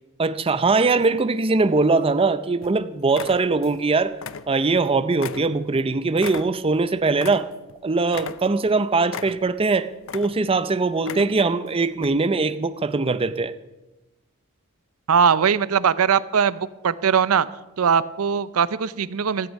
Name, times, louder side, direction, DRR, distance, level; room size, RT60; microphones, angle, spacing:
voice 1, 0.2-4.1 4.5-7.5 7.8-13.5, right 3 dB, 25° right, 0.5 m, -21 dB
sound 1, 1.6-2.2 2.6-2.8 3.1-3.8 4.1-4.8 5.2-7.8 8.1-8.7 9.1-9.7 10.0-10.6 11.0-11.5 12.0-12.1, left 6 dB, 65° left, 0.6 m, -36 dB
voice 2, 15.1-17.5 17.8-19.5, right 7 dB, 75° right, 0.5 m, -20 dB
16.5 x 13.5 x 5.3 m
head